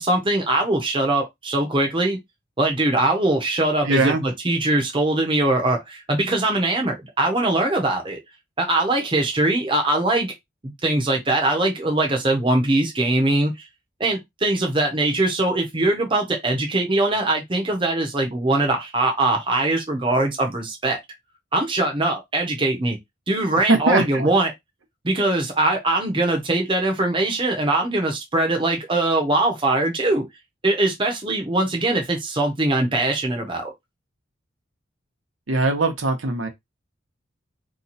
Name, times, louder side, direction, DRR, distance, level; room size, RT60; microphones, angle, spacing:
voice 1, 0.0-2.2 2.6-8.2 8.6-10.3 10.6-13.5 14.0-21.0 21.5-23.0 23.3-24.5 25.0-30.3 30.6-33.7, right 2 dB, 25° right, 0.7 m, -22 dB
voice 2, 3.8-4.2 23.7-24.3 35.5-36.5, right 2 dB, 80° right, 0.8 m, -21 dB
2.9 x 2.2 x 4.0 m
head